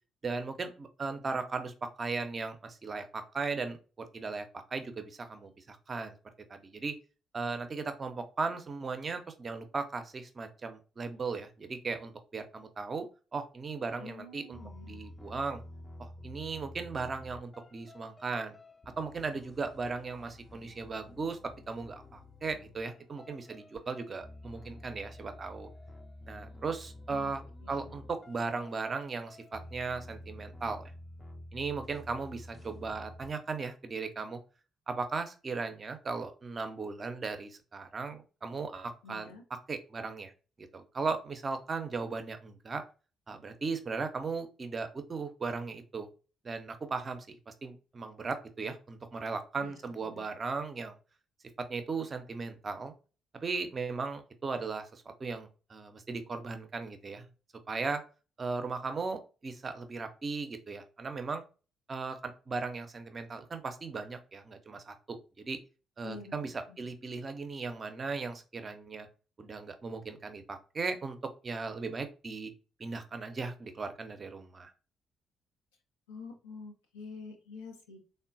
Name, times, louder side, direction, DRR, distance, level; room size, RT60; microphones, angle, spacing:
voice 1, 0.2-4.5 4.7-6.2 6.5-6.9 7.3-13.1 13.3-15.6 16.0-18.6 19.0-21.4 21.7-25.7 26.3-27.4 27.7-30.8 31.5-34.4 34.9-39.3 39.7-40.3 40.6-42.8 43.3-46.1 46.4-51.0 51.6-52.9 53.4-57.2 57.7-58.0 58.4-61.4 61.9-65.6 66.0-69.1 69.4-71.2 71.4-72.5 72.8-74.7, right 4 dB, 40° right, 8 dB, 0.6 m, -37 dB
voice 2, 14.0-15.0 27.1-27.3 27.6-28.0 39.0-39.4 49.6-50.3 66.0-66.9 76.1-78.0, left 4 dB, 80° left, 2 dB, 0.5 m, -48 dB
sound 1, 14.5-33.3, left 1 dB, 25° left, 0.5 m, -50 dB
3.7 x 2.1 x 2.4 m, 0.34 s
figure-of-eight pair, 40°, 0 cm